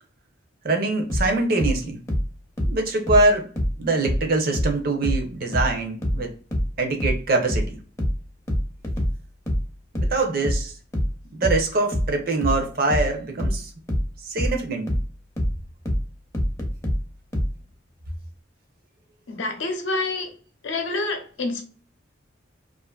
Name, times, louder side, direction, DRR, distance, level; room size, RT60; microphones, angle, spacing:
voice 1, 0.6-2.0 2.6-3.5 3.8-6.3 6.8-7.8 10.0-10.7 11.3-13.7 14.3-14.9, right 2 dB, 50° right, 0.6 m, -23 dB
sound 1, 1.1-4.3 4.5-17.6, equal, 15° left, 0.5 m, -25 dB
voice 2, 19.3-20.3 20.6-21.6, left 3 dB, 75° left, 0.6 m, -27 dB
2.5 x 2.5 x 2.2 m
head